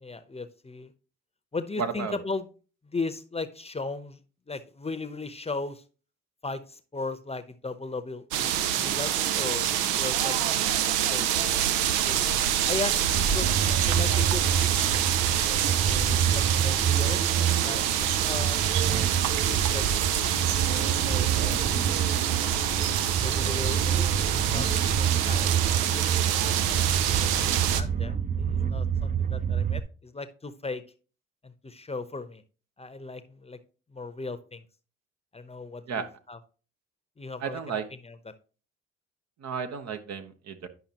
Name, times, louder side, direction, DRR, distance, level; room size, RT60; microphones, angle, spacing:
voice 1, 0.0-0.9 1.5-2.5 2.8-4.2 4.5-5.8 6.4-9.7 10.0-11.7 12.0-12.3 12.6-14.7 15.4-17.2 17.6-19.8 20.2-21.7 22.2-24.7 24.9-26.2 26.6-26.9 27.2-30.8 31.4-32.4 32.8-33.6 33.9-34.6 35.3-36.4 37.2-37.6 38.0-38.1, left 3 dB, 20° left, 11 dB, 0.8 m, -37 dB
voice 2, 1.8-2.2 35.9-36.1 37.4-37.8 39.4-40.7, right 6 dB, 60° right, 8 dB, 1.1 m, -33 dB
sound 1, 8.3-27.8, right 10 dB, 85° right, 0.6 m, -26 dB
sound 2, 13.1-29.8, right 8 dB, 25° right, 0.6 m, -28 dB
10.0 x 5.5 x 2.9 m, 0.37 s
hypercardioid pair, 50°, 31 cm